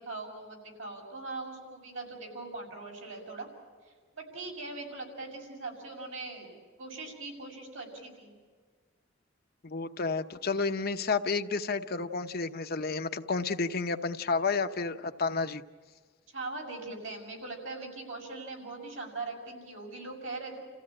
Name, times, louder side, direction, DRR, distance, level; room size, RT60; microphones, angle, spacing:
voice 1, 0.0-3.5 4.2-8.3 16.3-20.6, right 3 dB, 80° right, 0 dB, 6.9 m, -41 dB
voice 2, 9.6-15.6, left 4 dB, 50° left, 8 dB, 0.9 m, -31 dB
29.5 x 15.5 x 8.7 m, 1.5 s
head